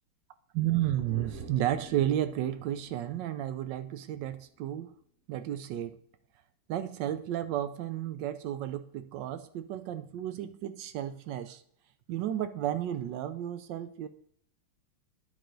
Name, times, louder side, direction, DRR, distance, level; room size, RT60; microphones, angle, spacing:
voice 1, 0.5-4.9 5.3-6.0 6.7-11.6 12.1-14.1, right 12 dB, 75° right, 11 dB, 1.1 m, -32 dB
sound 1, 1.0-4.4 4.7-4.8, right 4 dB, 50° right, 1.1 m, -49 dB
10.0 x 4.9 x 3.8 m, 0.64 s
omnidirectional pair, 2.2 m